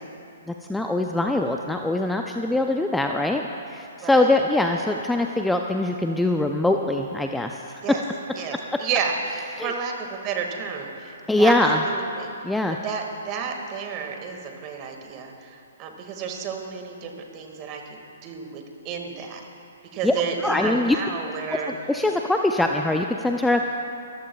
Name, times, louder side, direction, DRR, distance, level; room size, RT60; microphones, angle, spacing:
voice 1, 0.5-7.8 9.6-9.7 11.3-11.8 12.4-12.8 20.0-20.1 20.4-21.0 21.7-23.6, left 2 dB, 5° left, 3 dB, 0.5 m, -23 dB
voice 2, 8.3-12.3 12.8-18.0 18.2-19.4 19.9-21.7, right 6 dB, 30° right, 3 dB, 1.9 m, -31 dB
24.5 x 14.5 x 2.3 m, 2.6 s
hypercardioid pair, 130°, 0 cm